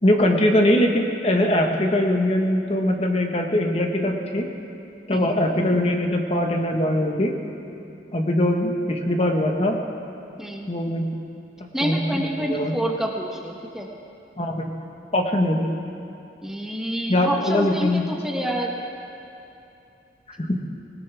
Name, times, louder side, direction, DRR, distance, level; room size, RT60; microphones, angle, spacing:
voice 1, 0.0-4.5 5.1-7.3 8.1-9.8 10.7-11.1 11.8-12.8 14.4-14.7 15.1-15.7 17.1-18.1 20.4-20.6, left 1 dB, 35° left, 2 dB, 1.2 m, -22 dB
voice 2, 10.4-10.7 11.7-13.9 16.4-18.8, right 1 dB, 5° right, 0 dB, 1.1 m, -28 dB
20.5 x 19.5 x 3.4 m, 2.8 s
head